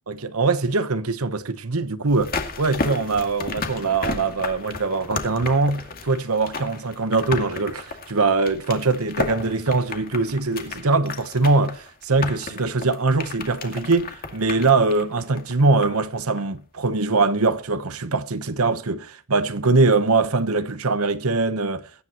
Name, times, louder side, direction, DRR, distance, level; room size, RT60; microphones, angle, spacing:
voice 1, 0.1-21.9, right 3 dB, 75° right, 1.1 m, -22 dB
sound 1, 2.1-16.1 16.4-16.5, left 3 dB, 40° left, 2.2 m, -33 dB
22.5 x 10.5 x 3.0 m
head